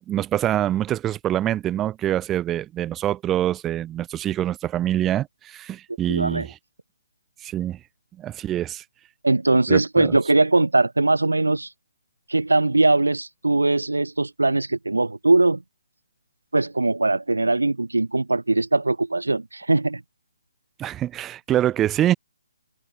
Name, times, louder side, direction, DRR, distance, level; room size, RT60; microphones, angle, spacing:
voice 1, 0.1-6.5 7.4-7.8 8.2-8.8 9.7-10.1 20.8-22.1, right 12 dB, 15° right, 1.0 m, -25 dB
voice 2, 6.1-6.5 9.2-11.7 12.3-15.6 16.5-20.0, right 2 dB, 85° right, 1.2 m, -20 dB
open air
figure-of-eight pair, 145°, 0 cm